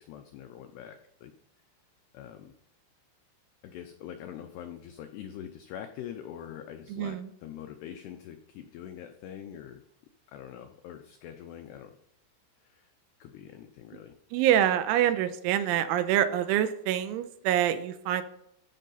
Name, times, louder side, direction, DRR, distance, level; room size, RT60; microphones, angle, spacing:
voice 1, 0.0-1.3 2.1-2.5 3.6-9.8 10.3-12.0 12.6-12.9 13.2-14.1, left 10 dB, 85° left, 6 dB, 2.3 m, -44 dB
voice 2, 6.9-7.3 14.3-18.2, right 11 dB, 90° right, 10 dB, 3.1 m, -26 dB
14.5 x 5.5 x 4.0 m, 0.75 s
omnidirectional pair, 5.6 m